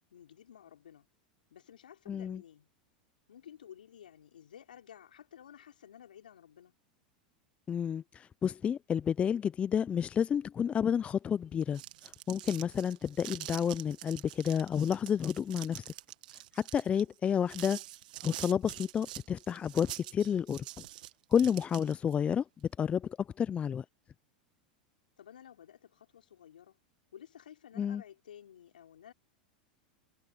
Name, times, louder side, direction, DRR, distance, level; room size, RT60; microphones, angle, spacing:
voice 1, 0.1-1.1 1.5-2.7 3.3-6.7 16.8-17.2 25.2-26.8 27.1-29.1, left 9 dB, 80° left, 5.5 m, -53 dB
voice 2, 2.1-2.4 7.7-15.8 16.5-17.8 18.2-20.6 21.3-22.4 22.8-23.8 27.8-28.0, left 8 dB, 25° left, 0.5 m, -30 dB
sound 1, 11.5-22.1, right 15 dB, 70° right, 1.8 m, -46 dB
hypercardioid pair, 95°, 5 cm